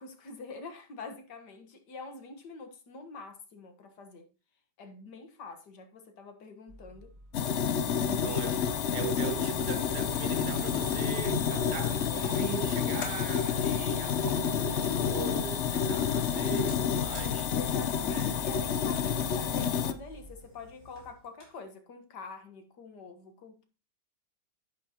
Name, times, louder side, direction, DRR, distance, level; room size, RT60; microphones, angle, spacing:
voice 1, 0.0-4.3 4.8-7.1 8.0-8.9 13.8-14.4 17.5-23.6, left 4 dB, 80° left, 2.0 m, -46 dB
sound 1, 6.7-20.4, right 2 dB, 25° right, 2.5 m, -49 dB
sound 2, 7.3-19.9, left 8 dB, 55° left, 0.8 m, -29 dB
voice 2, 7.7-8.6 8.9-17.6 18.0-18.5, right 7 dB, 75° right, 1.5 m, -40 dB
Fire, 16.7-21.6, left 3 dB, 30° left, 4.4 m, -51 dB
11.0 x 8.5 x 2.9 m
omnidirectional pair, 1.8 m